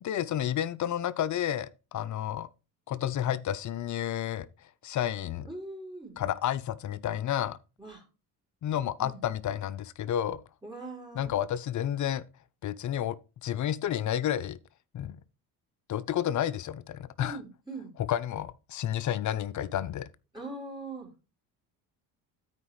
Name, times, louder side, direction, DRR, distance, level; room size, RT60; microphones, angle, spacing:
voice 1, 0.0-2.5 2.9-5.5 6.2-7.6 8.6-10.4 11.1-12.2 12.6-14.6 14.9-15.2 15.9-17.4 18.0-20.1, left 10 dB, 40° left, 0.6 m, -31 dB
voice 2, 5.5-6.2 7.8-8.0 9.0-9.2 10.6-11.3 17.2-17.9 20.3-21.1, right 2 dB, 10° right, 4.1 m, -41 dB
12.5 x 4.9 x 3.2 m
hypercardioid pair, 60°, 46 cm